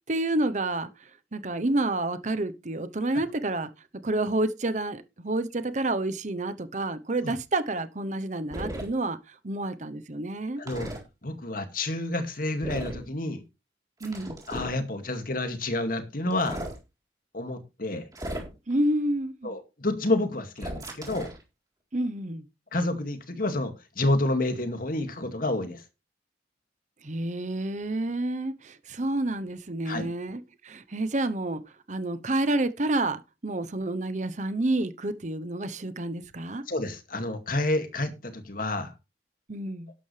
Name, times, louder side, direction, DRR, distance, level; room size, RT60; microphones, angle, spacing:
voice 1, 0.1-10.6 14.0-14.4 18.7-19.5 21.9-22.4 27.0-31.6 31.9-36.6 39.5-39.9, right 2 dB, 40° right, 0.9 m, -29 dB
sound 1, 8.5-8.9 10.7-11.0 12.6-13.1 14.0-14.8 16.3-16.8 18.1-18.7 20.6-21.4, right 1 dB, 20° right, 3.7 m, -36 dB
voice 2, 10.6-10.9 11.2-13.4 14.5-16.6 17.3-18.1 19.4-21.3 22.7-25.8 29.9-30.1 36.7-38.9, left 2 dB, 50° left, 2.2 m, -29 dB
12.5 x 11.0 x 3.3 m
head